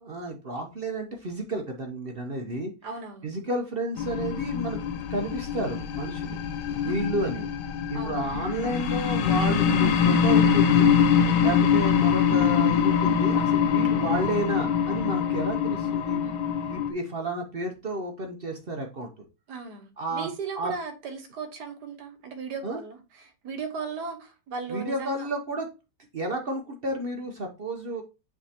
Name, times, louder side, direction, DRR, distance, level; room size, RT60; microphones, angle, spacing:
voice 1, 0.0-2.7 3.2-4.8 5.1-6.4 6.8-7.5 7.9-10.9 11.4-16.2 16.7-19.3 20.0-20.3 20.6-20.7 22.6-22.8 24.7-25.7 26.1-28.0, right 1 dB, 45° right, 0.8 m, -31 dB
voice 2, 2.8-3.3 6.7-7.0 7.9-8.3 11.1-11.3 19.5-25.3, right 5 dB, 75° right, 1.7 m, -37 dB
sound 1, 4.0-16.9, left 7 dB, 85° left, 1.4 m, -23 dB
Wind instrument woodwind instrument, 12.8-16.8, right 3 dB, 60° left, 4.9 m, -45 dB
9.4 x 3.6 x 2.8 m
omnidirectional pair, 1.8 m